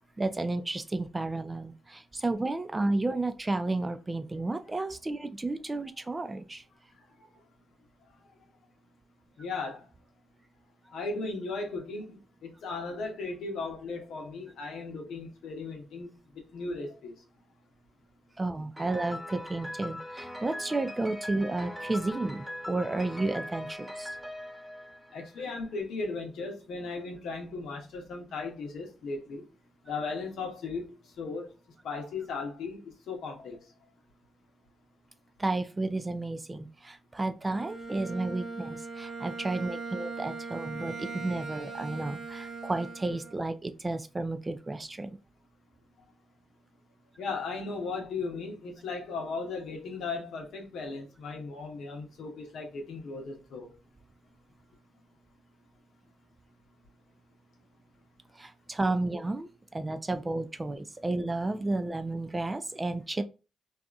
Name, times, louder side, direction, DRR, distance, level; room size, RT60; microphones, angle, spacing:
voice 1, 0.2-6.6 18.4-24.2 35.4-45.1 58.3-63.2, right 2 dB, 25° right, 0.4 m, -32 dB
voice 2, 9.4-9.9 10.9-17.1 25.1-29.5 29.9-31.5 31.8-33.6 47.2-53.7, left 3 dB, 75° left, 0.8 m, -37 dB
Piano, 18.8-25.6, left 1 dB, 10° right, 1.0 m, -41 dB
Bowed string instrument, 37.4-43.5, right 4 dB, 70° right, 1.2 m, -40 dB
2.8 x 2.4 x 2.3 m
supercardioid pair, 50°, 0 cm